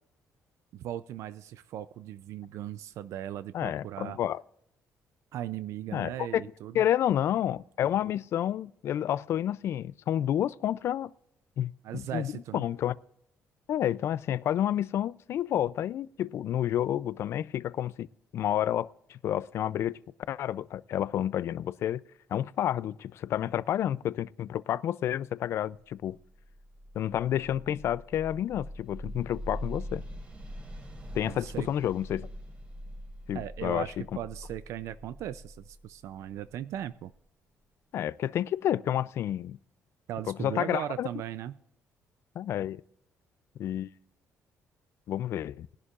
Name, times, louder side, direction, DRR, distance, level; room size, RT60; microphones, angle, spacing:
voice 1, 0.7-4.2 5.3-6.8 11.8-12.6 31.2-31.7 33.3-37.1 40.1-41.6, right 11 dB, 70° right, 0.4 m, -38 dB
voice 2, 3.5-4.4 5.9-6.4 6.7-11.1 11.6-12.9 13.7-18.1 18.3-20.0 20.3-22.0 22.3-26.2 27.0-30.0 31.1-32.3 33.3-34.0 37.9-39.6 40.3-41.1 42.4-42.8 43.6-43.9 45.1-45.7, left 11 dB, 55° left, 0.4 m, -30 dB
sound 1, 26.3-37.1, equal, 25° right, 3.6 m, -43 dB
21.0 x 11.0 x 2.5 m
cardioid pair, 155°, 5 cm